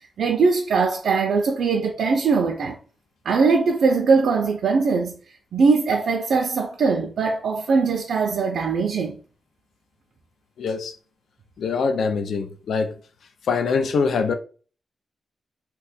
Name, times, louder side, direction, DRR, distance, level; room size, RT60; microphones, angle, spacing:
voice 1, 0.2-2.8 3.3-5.2 5.5-9.2, right 4 dB, 75° right, 0.4 m, -21 dB
voice 2, 10.6-10.9 11.6-12.9 13.5-14.3, left 5 dB, 75° left, 0.4 m, -23 dB
2.8 x 2.2 x 4.1 m
wide cardioid pair, 170°, 0 cm